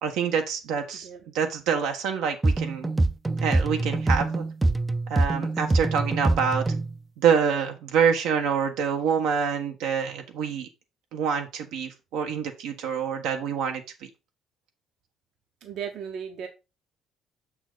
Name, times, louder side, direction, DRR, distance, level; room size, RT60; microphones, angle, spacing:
voice 1, 0.0-1.1 1.3-2.9 3.4-4.4 5.1-6.6 7.2-10.7 11.1-14.1, right 7 dB, 85° right, 4 dB, 1.5 m, -26 dB
sound 1, 2.4-7.0, right 2 dB, 15° right, 0.5 m, -25 dB
voice 2, 15.6-16.5, right 8 dB, 65° right, 4 dB, 1.2 m, -35 dB
6.5 x 6.1 x 4.0 m, 0.27 s
cardioid pair, 110°, 0 cm